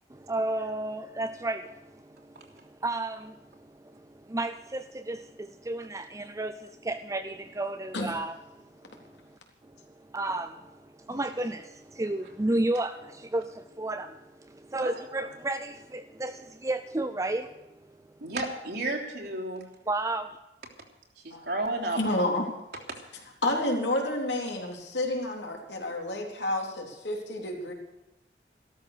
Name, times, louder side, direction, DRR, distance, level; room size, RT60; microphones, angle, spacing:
voice 1, 0.1-9.4 10.0-17.7 19.9-20.4, right 2 dB, 20° right, 9 dB, 0.5 m, -33 dB
voice 2, 18.2-19.6 21.2-22.0, right 2 dB, 65° right, -1 dB, 3.3 m, -32 dB
voice 3, 22.0-22.5 23.4-27.7, left 1 dB, 75° left, 1 dB, 3.5 m, -30 dB
14.5 x 13.0 x 6.7 m, 0.95 s
head